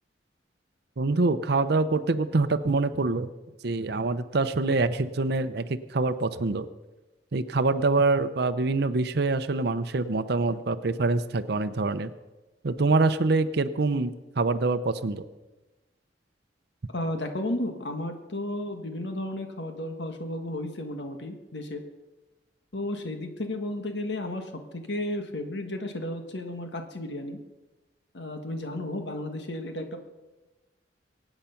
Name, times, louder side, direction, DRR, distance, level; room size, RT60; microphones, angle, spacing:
voice 1, 1.0-3.3 3.6-6.7 7.3-12.1 12.6-15.2, right 3 dB, 65° right, 9 dB, 0.6 m, -25 dB
voice 2, 16.9-21.8 22.7-27.4 28.1-30.0, left 1 dB, 75° left, 5 dB, 1.5 m, -33 dB
23.0 x 8.9 x 5.8 m, 1.1 s
head